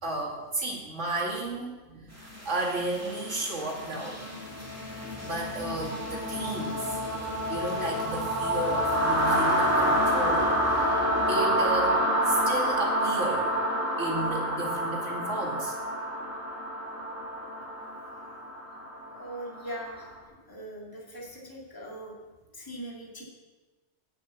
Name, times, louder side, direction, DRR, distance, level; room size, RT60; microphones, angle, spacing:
voice 1, 0.0-2.1 2.4-4.2 5.2-7.0 7.5-13.5 14.0-15.7, right 2 dB, 90° right, -1 dB, 2.6 m, -33 dB
sound 1, 2.2-20.0, equal, 15° right, 2.4 m, -28 dB
voice 2, 19.0-22.1 22.5-23.2, right 1 dB, 20° left, -3 dB, 2.1 m, -41 dB
8.7 x 7.6 x 8.2 m, 1.2 s
omnidirectional pair, 1.2 m